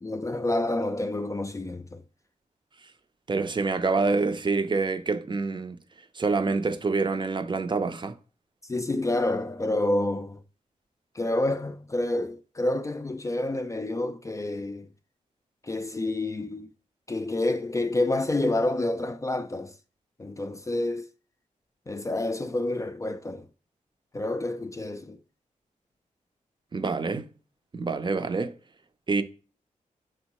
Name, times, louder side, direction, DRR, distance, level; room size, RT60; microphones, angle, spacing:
voice 1, 0.0-2.0 8.7-10.4 11.2-14.9 15.6-16.7 17.1-19.7 20.2-21.1 21.9-23.5 24.1-25.2, left 2 dB, 25° left, 0.3 m, -28 dB
voice 2, 3.3-5.8 6.2-8.2 26.7-27.3 27.7-28.5 29.1-29.2, right 4 dB, 35° right, 0.5 m, -26 dB
4.5 x 3.5 x 3.0 m
cardioid pair, 60°, 14 cm